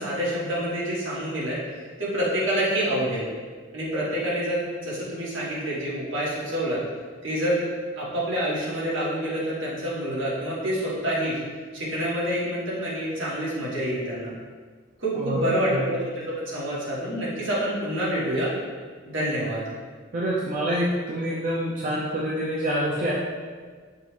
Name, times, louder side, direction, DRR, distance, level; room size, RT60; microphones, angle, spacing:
voice 1, 0.0-1.6 2.0-3.3 3.7-6.8 7.2-7.7 8.0-11.4 11.7-14.3 15.0-18.5 19.0-19.6, equal, 65° right, -6 dB, 1.1 m, -27 dB
voice 2, 15.1-15.8 20.1-23.1, right 1 dB, 40° right, -6 dB, 0.4 m, -26 dB
5.2 x 2.1 x 3.1 m, 1.5 s
head